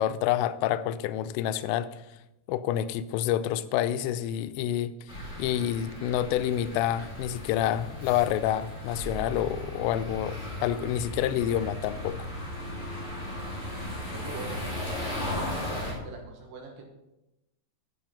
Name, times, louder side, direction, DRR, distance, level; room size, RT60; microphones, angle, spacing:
voice 1, 0.0-2.0 2.5-4.9 5.4-12.2, left 11 dB, 85° left, 14 dB, 2.6 m, -28 dB
sound 1, 5.1-15.9, left 1 dB, 25° left, 1.7 m, -36 dB
voice 2, 14.1-14.7 15.2-16.8, right 3 dB, 75° right, 1 dB, 3.6 m, -42 dB
11.5 x 5.7 x 5.6 m, 0.93 s
omnidirectional pair, 5.3 m